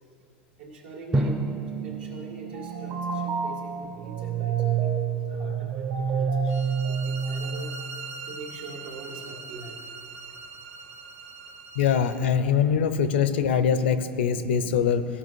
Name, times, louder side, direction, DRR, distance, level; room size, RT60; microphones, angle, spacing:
voice 1, 0.6-1.4 1.7-6.6 6.9-7.8 8.2-9.8, right 3 dB, 85° right, -1 dB, 2.2 m, -43 dB
Drum, 1.1-3.8, right 2 dB, 10° right, 0.5 m, -31 dB
sound 1, 2.5-7.9, right 6 dB, 60° right, 1.2 m, -28 dB
sound 2, 6.5-12.3, right 5 dB, 45° right, 0.9 m, -41 dB
voice 2, 11.8-15.1, left 7 dB, 85° left, 12 dB, 0.6 m, -23 dB
15.0 x 5.6 x 4.6 m, 2.5 s
supercardioid pair, 115°, 6 cm